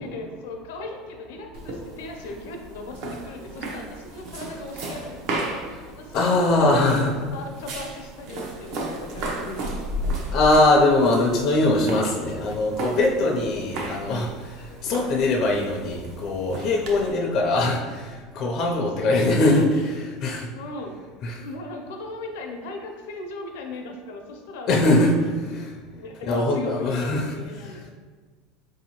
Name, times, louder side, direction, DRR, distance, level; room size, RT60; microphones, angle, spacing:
voice 1, 0.0-5.6 5.9-7.0 7.3-10.3 14.7-14.9 17.0-17.3 18.8-19.8 20.6-21.0 21.3-27.9, left 2 dB, 85° left, 3 dB, 0.6 m, -38 dB
sound 1, 1.5-17.1, right 1 dB, 55° right, 0.7 m, -34 dB
voice 2, 6.1-7.1 10.3-20.5 21.2-21.4 24.7-25.1 25.5-25.7 26.3-27.3, left 2 dB, 40° left, -1 dB, 0.4 m, -21 dB
4.6 x 2.7 x 2.9 m, 1.5 s
supercardioid pair, 155°, 0 cm